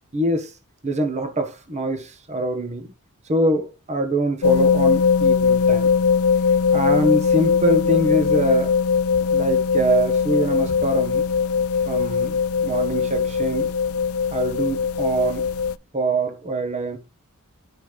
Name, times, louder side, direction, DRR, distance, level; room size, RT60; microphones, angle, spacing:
voice 1, 0.1-0.5 0.8-2.9 3.2-5.9 6.7-8.7 9.3-11.2 11.9-13.7 14.3-15.5 15.9-17.0, right 1 dB, 30° right, 1.3 m, -24 dB
sound 1, 4.4-15.7, left 6 dB, 70° left, 0.4 m, -20 dB
11.5 x 5.7 x 3.2 m
head